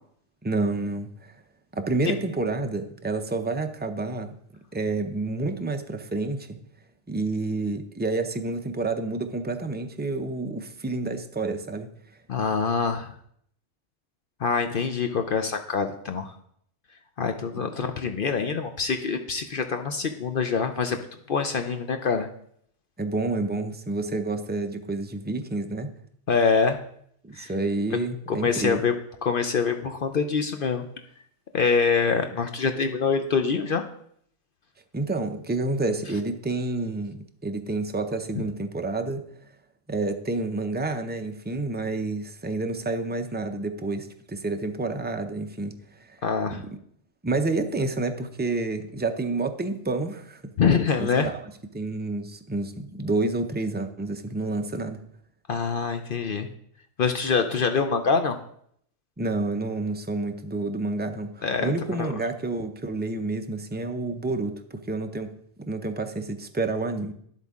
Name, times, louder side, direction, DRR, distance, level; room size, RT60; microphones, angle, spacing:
voice 1, 0.4-1.3 1.7-4.3 4.7-6.6 7.1-11.9 23.0-25.9 27.2-28.8 34.9-39.2 39.9-45.7 46.0-46.2 46.5-46.6 47.2-50.5 51.0-51.4 51.7-55.0 59.2-65.3 65.6-67.1, right 2 dB, 15° right, 6 dB, 0.3 m, -29 dB
voice 2, 12.3-13.1 14.4-16.3 17.2-22.3 26.3-26.8 27.4-27.5 28.3-28.9 29.2-30.8 31.5-33.9 46.2-46.6 50.6-51.3 55.5-56.5 57.0-58.4 61.4-61.7 62.0-62.1, left 5 dB, 55° left, 7 dB, 0.7 m, -25 dB
11.0 x 8.1 x 3.6 m, 0.68 s
omnidirectional pair, 1.3 m